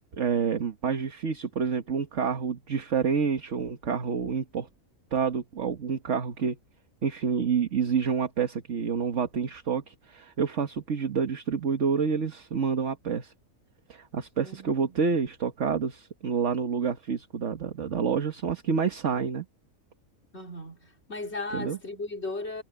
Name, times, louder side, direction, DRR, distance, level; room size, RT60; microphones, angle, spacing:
voice 1, 0.1-4.7 5.1-6.6 7.0-13.3 13.9-19.5 21.5-21.8, right 6 dB, 60° right, 1.7 m, -28 dB
voice 2, 14.4-15.1 20.3-22.6, left 2 dB, 50° left, 4.0 m, -37 dB
omnidirectional pair, 1.4 m